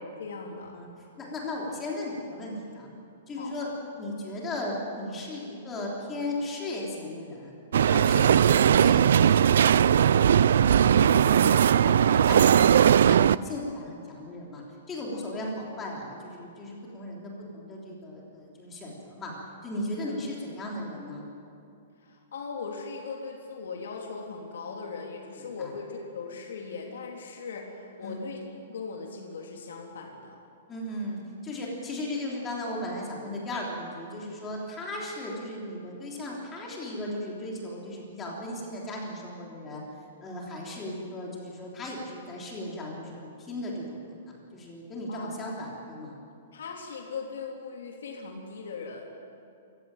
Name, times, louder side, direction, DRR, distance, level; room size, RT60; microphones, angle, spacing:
voice 1, 0.1-0.8 3.4-3.5 15.1-15.3 19.9-20.2 22.0-28.4 28.7-30.4 45.1-45.4 46.5-49.1, left 4 dB, 80° left, 0 dB, 3.5 m, -39 dB
voice 2, 1.2-2.9 3.3-3.7 4.0-7.5 7.8-14.6 14.9-19.3 19.6-21.3 25.6-25.7 28.0-28.2 30.7-39.8 40.2-44.0 44.3-46.1, left 1 dB, 15° left, -3 dB, 3.4 m, -36 dB
sound 1, 7.7-13.4, right 9 dB, 70° right, 0.4 m, -19 dB
24.5 x 15.5 x 9.0 m, 2.5 s
hypercardioid pair, 175°, 0 cm